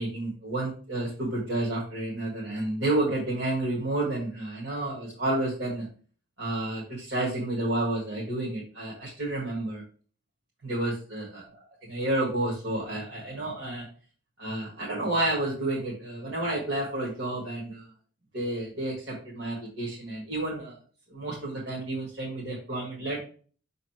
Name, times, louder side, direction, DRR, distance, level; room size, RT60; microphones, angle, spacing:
voice 1, 0.0-5.9 6.4-9.8 10.6-11.4 11.9-13.9 14.4-17.9 18.3-20.7 21.1-23.2, right 2 dB, 65° right, -5 dB, 2.1 m, -30 dB
5.7 x 4.0 x 4.5 m, 0.41 s
head